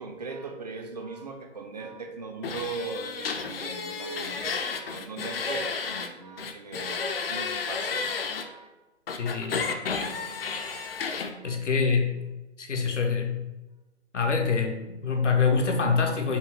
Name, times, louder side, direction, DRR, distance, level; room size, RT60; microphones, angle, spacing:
voice 1, 0.0-8.1 8.4-8.7 9.2-9.4 11.4-11.6, right 4 dB, 35° right, 3 dB, 0.4 m, -39 dB
sound 1, 2.4-6.1 6.4-8.4 9.1-11.3, left 5 dB, 55° left, 0.5 m, -32 dB
voice 2, 9.2-9.6 11.4-12.1 12.6-13.4 14.1-16.4, left 5 dB, 75° left, 2 dB, 0.9 m, -25 dB
5.4 x 2.3 x 3.5 m, 1.0 s
figure-of-eight pair, 140°, 36 cm